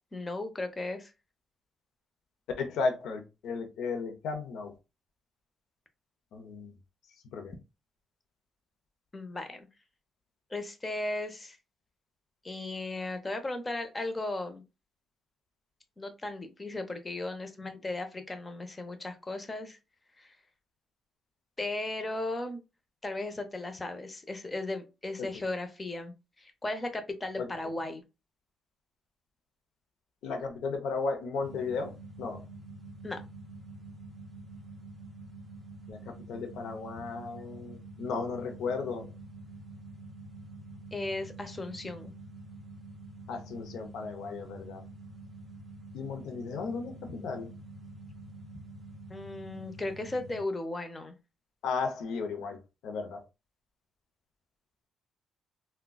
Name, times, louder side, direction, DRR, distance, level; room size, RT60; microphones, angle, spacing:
voice 1, 0.1-1.1 9.1-9.7 10.5-11.6 12.4-14.6 16.0-19.8 20.2-20.4 21.6-22.6 23.0-28.0 33.0-33.2 40.9-42.1 49.1-51.1, left 2 dB, 25° left, 0.6 m, -36 dB
voice 2, 2.6-4.7 6.3-6.7 7.3-7.5 25.2-25.3 27.4-27.5 30.2-32.4 35.9-39.1 43.3-44.8 45.9-47.5 51.6-52.6 52.8-53.2, left 4 dB, 80° left, 0.6 m, -35 dB
sound 1, 31.4-50.4, right 2 dB, ahead, 1.6 m, -47 dB
3.7 x 2.2 x 2.3 m
cardioid pair, 90°, 0 cm